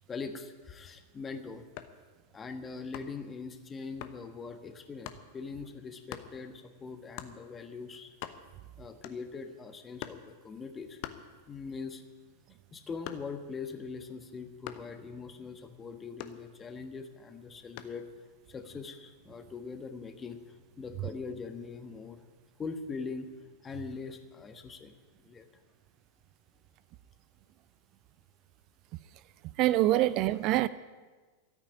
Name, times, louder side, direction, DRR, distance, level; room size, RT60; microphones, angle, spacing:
voice 1, 0.1-1.7 2.3-8.1 8.8-11.0 11.5-12.0 12.7-18.1 18.5-22.2 22.6-23.3 23.6-25.5, left 4 dB, 20° left, 8 dB, 1.4 m, -42 dB
sound 1, 1.8-2.1 2.9-3.3 4.0-4.2 5.1-5.3 6.1-6.3 7.2-7.4 7.8-8.7 9.0-9.4 10.0-10.3 11.0-11.8 12.1-13.5 14.6-15.0 16.2-16.9 17.8-18.1, left 12 dB, 45° left, 1.0 m, -44 dB
voice 2, 29.6-30.7, right 15 dB, 40° right, 16 dB, 0.4 m, -25 dB
13.5 x 8.9 x 9.9 m, 1.4 s
figure-of-eight pair, 90°, 0 cm